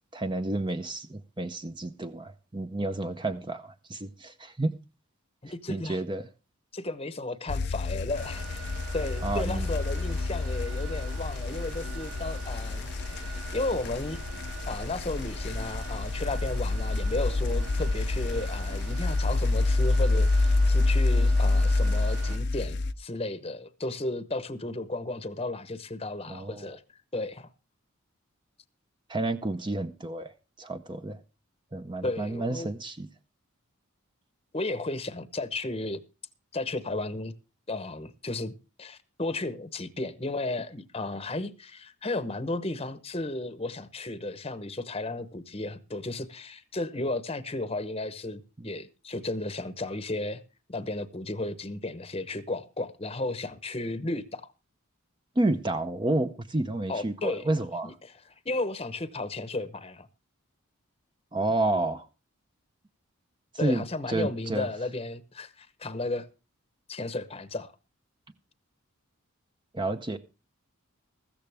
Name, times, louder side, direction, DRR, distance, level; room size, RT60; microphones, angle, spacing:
voice 1, 0.1-4.7 5.7-6.3 9.2-9.7 26.3-26.7 29.1-30.3 30.6-31.2 31.7-33.1 55.4-57.9 61.3-62.1 63.5-64.7 69.7-70.2, right 2 dB, 20° right, 0.6 m, -30 dB
voice 2, 5.4-6.0 6.7-14.2 14.7-26.8 27.1-27.5 32.0-32.7 34.5-36.0 36.5-37.3 37.7-38.5 38.8-50.4 50.7-54.4 56.9-57.5 57.8-58.2 58.4-60.1 63.6-66.3 66.9-67.7, left 2 dB, 25° left, 0.9 m, -34 dB
sound 1, 7.5-22.9, left 2 dB, 50° left, 0.6 m, -27 dB
sound 2, 8.1-22.4, right 5 dB, 85° right, 3.9 m, -44 dB
15.0 x 13.5 x 3.4 m
head